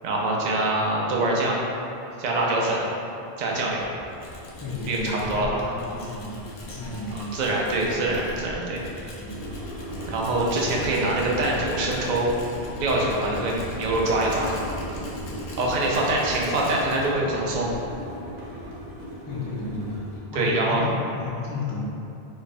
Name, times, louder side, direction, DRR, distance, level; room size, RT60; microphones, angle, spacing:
voice 1, 0.0-1.6 2.2-2.8 3.4-3.9 4.9-5.6 7.3-8.8 10.1-12.3 12.8-14.6 15.6-17.7 20.3-20.9, right 2 dB, 55° right, -3 dB, 0.6 m, -24 dB
Tools, 3.5-18.9, left 1 dB, 75° left, 0.8 m, -41 dB
voice 2, 4.6-6.4 6.7-7.4 9.0-9.6 15.2-15.4 19.3-21.8, left 3 dB, 30° left, -5 dB, 0.5 m, -33 dB
sound 1, 6.4-20.6, equal, 90° right, 1.0 m, -38 dB
3.3 x 2.2 x 4.0 m, 2.7 s
omnidirectional pair, 1.0 m